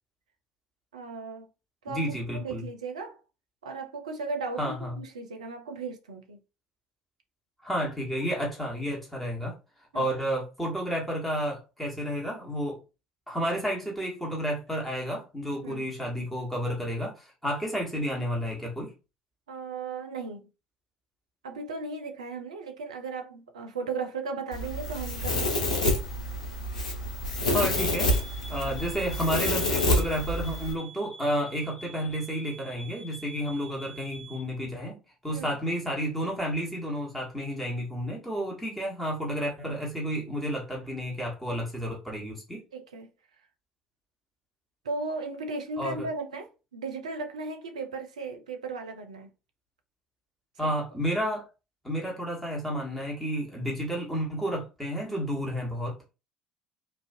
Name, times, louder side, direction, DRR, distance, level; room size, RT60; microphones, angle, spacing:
voice 1, 0.9-1.5 1.8-2.0 2.3-3.2 3.6-6.4 9.9-10.1 15.6-15.9 19.5-20.5 21.4-25.7 35.3-35.5 42.7-43.1 44.8-49.3, right 4 dB, 80° right, 0.5 m, -36 dB
voice 2, 1.9-2.6 4.6-5.0 7.6-9.6 9.9-12.8 13.3-18.9 27.5-28.1 28.5-35.0 35.2-42.6 45.8-46.1 50.6-51.5 51.8-56.0, equal, 5° left, 1.2 m, -31 dB
Domestic sounds home sounds, 24.5-30.7, left 1 dB, 85° left, 0.5 m, -28 dB
sound 1, 27.7-34.5, right 2 dB, 40° left, 1.3 m, -47 dB
2.4 x 2.2 x 2.5 m
figure-of-eight pair, 60°, 4 cm